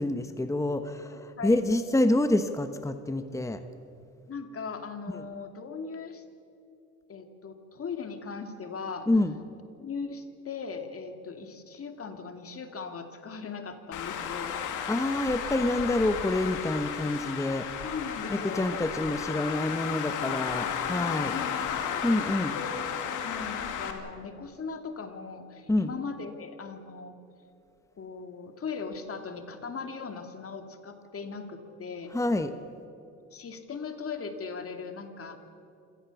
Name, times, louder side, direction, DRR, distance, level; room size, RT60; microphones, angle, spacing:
voice 1, 0.0-3.6 5.1-5.2 9.1-9.3 14.9-17.7 18.3-21.3 22.0-22.5 25.7-25.9 32.1-32.5, left 1 dB, 10° left, 9 dB, 1.2 m, -27 dB
voice 2, 1.1-1.6 4.3-6.2 7.1-9.1 9.8-14.5 17.8-18.7 21.3-22.0 22.5-22.8 23.2-27.2 28.0-32.1 33.3-35.4, left 5 dB, 50° left, 6 dB, 2.5 m, -39 dB
Traffic noise roadway noise, 13.9-23.9, left 8 dB, 85° left, 2.4 m, -33 dB
27.5 x 18.0 x 7.1 m, 2.6 s
cardioid pair, 90°, 30 cm